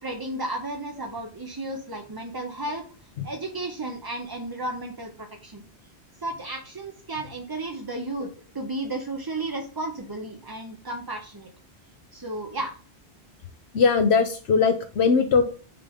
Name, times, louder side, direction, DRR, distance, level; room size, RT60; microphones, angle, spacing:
voice 1, 0.0-2.8 3.2-5.6 6.2-8.3 8.5-11.5 12.1-12.7, right 2 dB, 25° right, 2 dB, 0.6 m, -33 dB
voice 2, 13.7-15.4, left 5 dB, 75° left, 6 dB, 1.0 m, -20 dB
5.7 x 5.0 x 3.5 m, 0.39 s
omnidirectional pair, 1.1 m